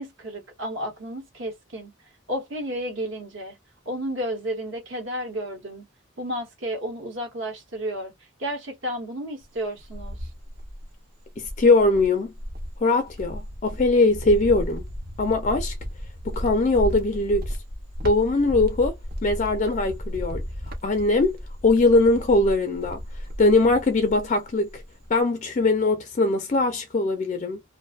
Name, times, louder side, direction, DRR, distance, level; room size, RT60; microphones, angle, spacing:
voice 1, 0.0-1.9 2.3-3.6 3.9-5.8 6.2-8.1 8.4-10.3, equal, 60° right, 1.1 m, -32 dB
Cricket, 9.4-10.9 11.4-24.4 24.7-25.2, equal, 45° right, 0.6 m, -34 dB
voice 2, 11.4-12.3 12.8-14.8 15.2-15.7 16.3-17.5 18.0-19.0 19.2-20.4 20.8-21.4 21.6-23.0 23.4-24.8 25.1-27.6, left 2 dB, 35° left, 0.3 m, -21 dB
2.5 x 2.3 x 2.3 m
head